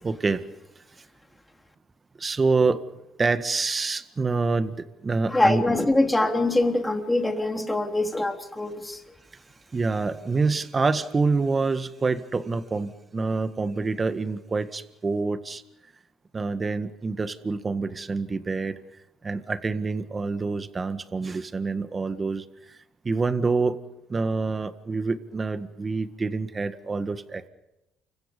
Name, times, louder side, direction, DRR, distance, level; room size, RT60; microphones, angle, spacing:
voice 1, 0.0-0.4 2.2-2.8 3.2-5.6 9.7-15.6 16.3-18.7 19.2-22.8 23.0-23.8 24.1-27.5, right 4 dB, 30° right, 10 dB, 1.8 m, -26 dB
voice 2, 5.3-9.0, left 2 dB, 10° left, 4 dB, 3.6 m, -23 dB
29.5 x 25.0 x 5.5 m, 0.91 s
supercardioid pair, 75°, 0 cm